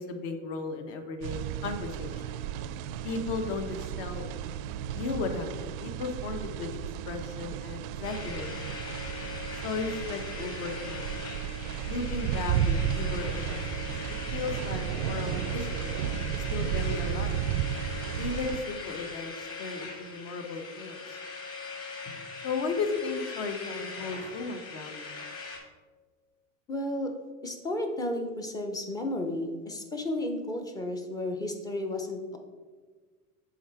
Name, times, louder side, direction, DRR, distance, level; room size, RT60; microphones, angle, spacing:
voice 1, 0.0-2.3 3.0-4.3 4.9-6.8 7.1-8.5 9.6-11.2 11.9-16.0 16.3-17.4 18.1-21.2 22.4-25.1, left 4 dB, 60° left, 6 dB, 1.0 m, -35 dB
sound 1, 1.2-18.6, right 9 dB, 75° right, 0.5 m, -33 dB
sound 2, 8.0-25.6, left 4 dB, 35° left, 1.6 m, -41 dB
voice 2, 26.7-27.1 27.4-32.4, left 1 dB, 10° left, 4 dB, 0.4 m, -33 dB
7.1 x 3.8 x 4.5 m, 1.4 s
supercardioid pair, 130°, 41 cm